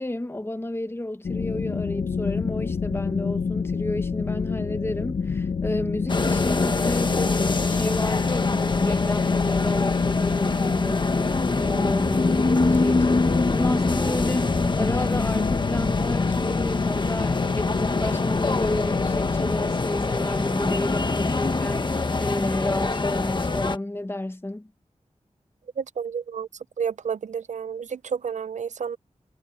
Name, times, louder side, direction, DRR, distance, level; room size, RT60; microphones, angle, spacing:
voice 1, 0.0-7.3 7.6-11.1 11.5-24.7, left 1 dB, 20° left, 1.2 m, -31 dB
sound 1, 1.2-19.8, left 5 dB, 90° left, 1.1 m, -28 dB
sound 2, 6.1-23.8, left 3 dB, 40° left, 1.3 m, -25 dB
sound 3, 10.9-22.8, left 5 dB, 70° left, 1.0 m, -36 dB
voice 2, 25.8-26.5 26.8-29.0, right 7 dB, 75° right, 0.5 m, -30 dB
wide cardioid pair, 100°, 12 cm